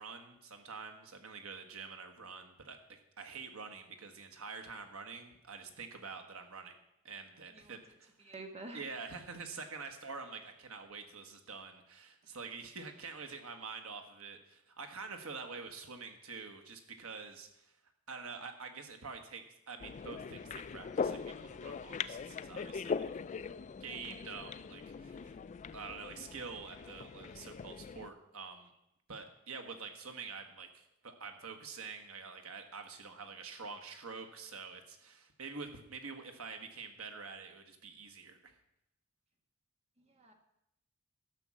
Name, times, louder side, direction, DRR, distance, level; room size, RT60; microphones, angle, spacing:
voice 1, 0.0-6.7 7.0-8.1 8.7-17.7 18.1-23.1 23.8-25.4 25.7-28.7 29.1-38.5, right 4 dB, 85° right, 6 dB, 1.4 m, -47 dB
voice 2, 8.2-8.8 40.0-40.3, right 2 dB, 30° right, 4 dB, 1.5 m, -49 dB
sound 1, 19.8-28.1, left 5 dB, 35° left, 0.3 m, -41 dB
12.5 x 6.2 x 7.5 m, 0.83 s
head